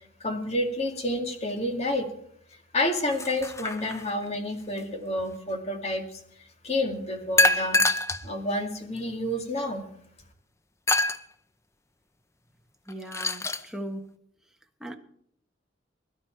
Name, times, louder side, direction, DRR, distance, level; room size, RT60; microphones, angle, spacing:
voice 1, 0.2-2.1 2.7-6.2 6.6-7.8 8.2-9.8, left 1 dB, 35° left, 2.1 m, -29 dB
sound 1, 3.1-4.2 7.4-8.2 9.0-9.1 10.9-11.2 12.9-13.6, left 2 dB, 15° left, 0.6 m, -25 dB
voice 2, 12.9-14.1 14.8-15.0, right 1 dB, 5° right, 1.2 m, -38 dB
22.0 x 11.5 x 4.6 m
head